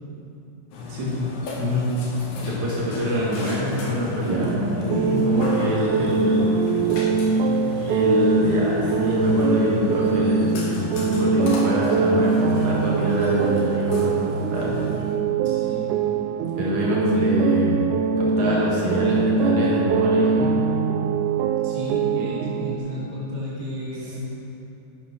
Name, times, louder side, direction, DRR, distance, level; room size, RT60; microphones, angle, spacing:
Burping eructation, 0.7-15.1, left 3 dB, 80° left, 3.2 m, -35 dB
voice 1, 0.9-1.3 1.6-1.9 2.4-6.4 7.9-14.8 16.5-17.8 18.2-20.5, left 1 dB, 65° right, -6 dB, 3.5 m, -25 dB
sound 1, 4.3-22.8, right 5 dB, 85° right, 2.0 m, -23 dB
voice 2, 15.4-16.1 21.6-24.3, equal, 15° right, -7 dB, 2.6 m, -32 dB
11.5 x 11.0 x 5.4 m, 2.8 s
omnidirectional pair, 3.5 m